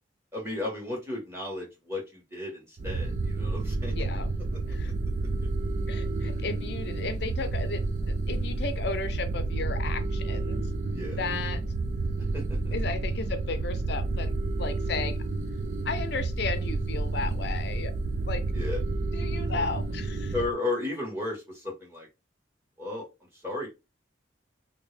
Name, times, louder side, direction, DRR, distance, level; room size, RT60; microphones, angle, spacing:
voice 1, 0.3-4.1 4.8-4.9 5.4-5.5 6.2-6.4 10.9-11.2 12.3-12.7 18.5-18.8 19.5-19.6 20.3-22.1 22.8-23.1 23.3-23.7, left 2 dB, 15° right, 1.4 m, -34 dB
sound 1, 2.8-20.5, right 2 dB, 40° right, 0.3 m, -30 dB
voice 2, 3.9-4.3 4.7-4.9 5.9-10.6 11.1-11.6 12.7-15.2 15.8-17.9 18.2-18.4 19.1-20.3, left 4 dB, 60° left, 0.5 m, -34 dB
2.9 x 2.8 x 3.2 m
head